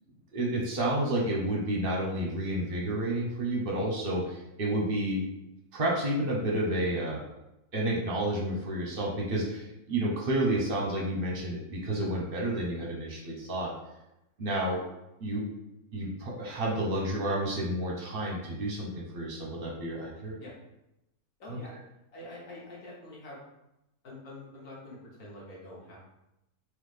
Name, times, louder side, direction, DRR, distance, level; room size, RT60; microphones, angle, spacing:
voice 1, 0.3-5.3 5.7-7.2 7.7-13.7 14.4-14.8 15.2-15.4 15.9-20.4 21.5-21.6, right 1 dB, 45° right, -1 dB, 1.0 m, -30 dB
voice 2, 21.4-21.7 22.1-23.4 24.0-26.0, left 1 dB, 75° left, -5 dB, 1.8 m, -45 dB
3.9 x 3.1 x 3.3 m, 0.88 s
omnidirectional pair, 1.6 m